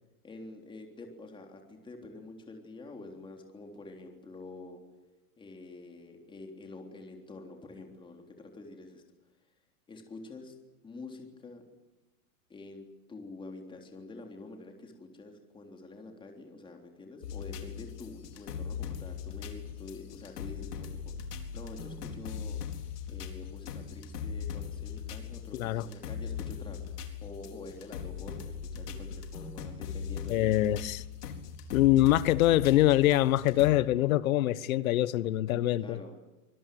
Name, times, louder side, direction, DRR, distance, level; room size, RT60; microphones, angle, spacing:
voice 1, 0.2-4.8 5.4-9.0 9.9-10.5 10.8-11.6 12.5-22.6 23.1-26.8 27.2-30.6 35.8-36.2, left 2 dB, 10° left, 3.6 m, -47 dB
sound 1, 17.2-33.7, left 7 dB, 85° left, 4.5 m, -40 dB
voice 2, 25.5-25.8 30.3-31.0 31.7-36.0, left 14 dB, 60° left, 1.3 m, -24 dB
25.0 x 21.0 x 9.4 m
supercardioid pair, 155°, 46 cm